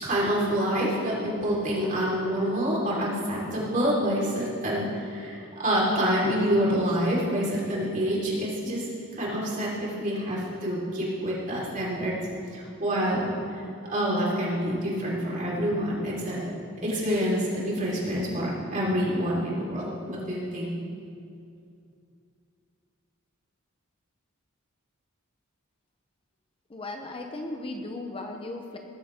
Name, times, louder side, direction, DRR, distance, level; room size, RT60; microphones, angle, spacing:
voice 1, 0.0-8.8 9.1-12.2 12.5-13.6 13.9-16.5 16.8-20.8, equal, 40° right, -6 dB, 4.3 m, -27 dB
voice 2, 26.7-28.8, left 2 dB, 25° left, 3 dB, 0.8 m, -36 dB
20.0 x 12.5 x 3.7 m, 2.5 s
head